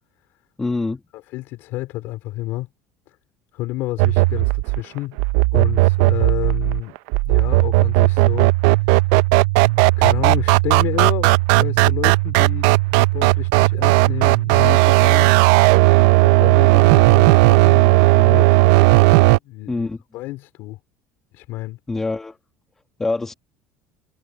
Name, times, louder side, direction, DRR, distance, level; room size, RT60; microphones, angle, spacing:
voice 1, 0.6-1.0 19.7-20.0 21.9-22.4 23.0-23.3, left 3 dB, 10° left, 1.2 m, -24 dB
voice 2, 1.1-2.7 3.1-3.2 3.5-5.2 5.5-7.0 7.2-8.9 10.0-15.4 16.2-18.6 19.2-20.8 21.3-21.8, left 18 dB, 55° left, 3.4 m, -30 dB
sound 1, 4.0-19.4, right 22 dB, 70° right, 0.4 m, -15 dB
cardioid pair, 175°, 5 cm